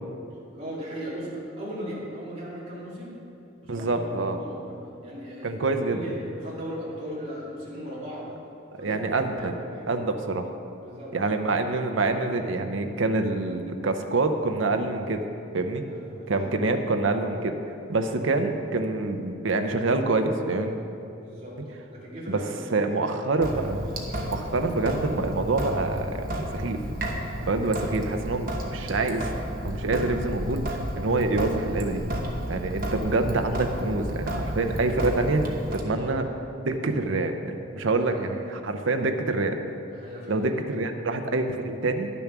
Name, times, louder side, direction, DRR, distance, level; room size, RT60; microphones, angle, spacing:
voice 1, 0.5-3.1 3.6-4.7 5.0-5.6 5.9-8.3 8.8-9.9 10.8-11.1 15.9-16.6 21.2-21.6 21.9-24.4 36.0-36.1 37.7-38.3 39.9-40.4, equal, 30° right, -7 dB, 2.6 m, -38 dB
voice 2, 3.7-4.4 5.4-6.0 8.7-9.5 9.9-10.5 11.1-15.2 15.5-15.8 16.3-17.6 17.9-20.8 22.3-22.4 22.7-23.8 24.2-26.8 27.4-29.3 29.6-30.6 31.0-32.0 32.5-36.3 36.6-39.6 40.3-42.1, right 3 dB, 80° right, 6 dB, 0.7 m, -26 dB
Sink (filling or washing) / Drip, 23.4-35.8, equal, 45° right, 1.1 m, -32 dB
10.5 x 7.0 x 6.0 m, 2.6 s
head